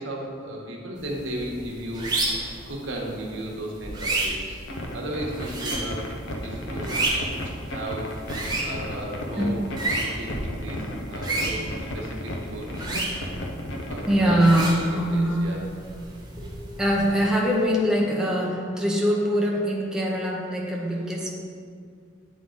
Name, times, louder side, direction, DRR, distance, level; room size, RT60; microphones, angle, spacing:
voice 1, 0.0-2.1 2.7-4.6 4.9-6.0 6.4-7.1 7.6-8.1 8.6-9.7 10.0-12.9 13.9-14.4 14.9-15.6, right 1 dB, 80° right, -2 dB, 1.2 m, -35 dB
untitled curtain, 1.0-17.3, right 2 dB, 20° right, 1.2 m, -32 dB
sound 1, 4.7-14.6, left 1 dB, 70° left, 0.7 m, -34 dB
voice 2, 9.4-9.7 14.1-15.5 16.8-21.3, equal, 5° right, -3 dB, 0.6 m, -23 dB
8.6 x 3.7 x 3.8 m, 2.2 s
head